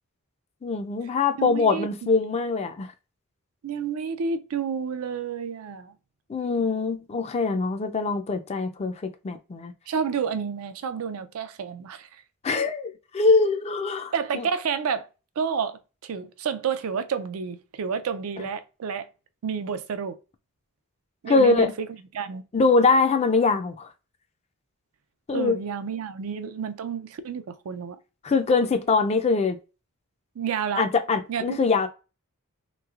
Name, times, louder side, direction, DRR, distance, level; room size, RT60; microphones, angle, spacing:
voice 1, 0.6-2.9 6.3-9.7 12.4-14.5 21.3-21.7 22.5-23.9 25.3-25.6 28.2-29.6 30.8-31.9, left 4 dB, 30° left, 0.3 m, -23 dB
voice 2, 1.4-2.1 3.6-5.9 9.9-12.2 14.1-15.1 15.4-19.1 19.4-20.2 21.2-21.9 22.1-22.5 25.3-28.0 30.4-30.9 31.3-31.6, right 6 dB, 70° right, 0.4 m, -30 dB
3.1 x 3.0 x 2.3 m
head